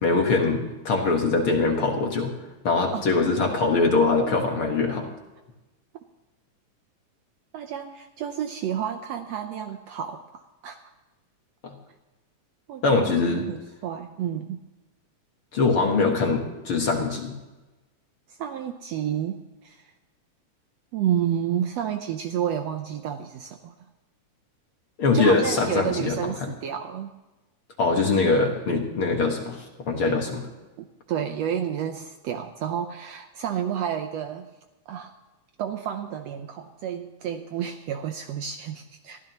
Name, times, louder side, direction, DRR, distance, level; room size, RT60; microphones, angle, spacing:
voice 1, 0.0-2.3 2.6-5.1 11.6-11.8 12.8-13.5 15.5-17.4 25.0-26.5 27.8-30.4, left 3 dB, 50° left, 2 dB, 2.0 m, -23 dB
voice 2, 7.5-10.8 12.7-14.6 18.3-19.8 20.9-23.7 25.1-27.2 28.0-28.4 30.0-30.2 30.8-34.5 34.9-35.1 35.6-39.2, right 9 dB, 75° right, 6 dB, 1.6 m, -30 dB
22.0 x 15.0 x 3.0 m, 1.1 s
omnidirectional pair, 3.6 m